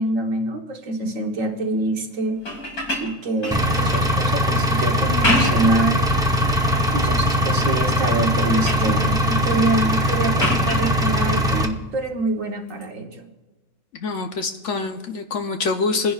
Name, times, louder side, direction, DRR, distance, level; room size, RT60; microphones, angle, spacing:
voice 1, 0.0-2.4 3.0-6.1 6.9-13.3, right 2 dB, 60° right, 3 dB, 1.5 m, -25 dB
sound 1, 2.3-4.1 5.0-5.8 6.3-6.9 7.4-7.9 8.2-8.9 10.4-10.9 12.7-12.8, left 1 dB, 80° left, 2.7 m, -27 dB
Engine, 3.5-11.7, equal, 5° right, 0.4 m, -20 dB
voice 2, 14.0-16.1, left 4 dB, 60° left, 5 dB, 1.0 m, -25 dB
25.0 x 10.5 x 2.4 m, 1.2 s
omnidirectional pair, 1.6 m